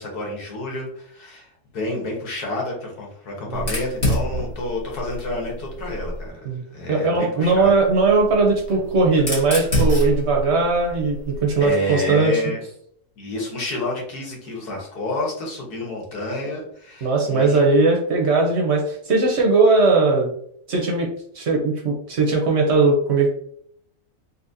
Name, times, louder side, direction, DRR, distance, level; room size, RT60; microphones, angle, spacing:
voice 1, 0.0-1.5 1.7-6.4 6.7-7.7 11.6-12.6 13.2-17.6, left 1 dB, 85° left, 0 dB, 1.6 m, -29 dB
Fire, 3.5-6.3 7.5-11.7, equal, 30° left, 1.4 m, -27 dB
voice 2, 6.9-12.4 17.0-20.3 20.7-23.3, right 3 dB, 55° right, 0 dB, 0.8 m, -19 dB
4.1 x 2.6 x 2.6 m, 0.67 s
omnidirectional pair, 1.6 m